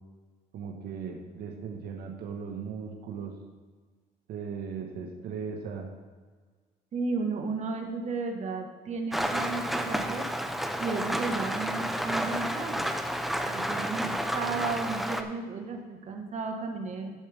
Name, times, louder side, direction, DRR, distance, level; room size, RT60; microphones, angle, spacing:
voice 1, 0.5-3.3 4.3-5.9, right 6 dB, 70° right, 2 dB, 1.4 m, -37 dB
voice 2, 6.9-10.2 10.8-12.9 13.4-17.1, right 4 dB, 45° right, 2 dB, 1.5 m, -34 dB
Rain, 9.1-15.2, equal, ahead, 0.7 m, -31 dB
12.0 x 8.4 x 3.5 m, 1.5 s
cardioid pair, 110°, 17 cm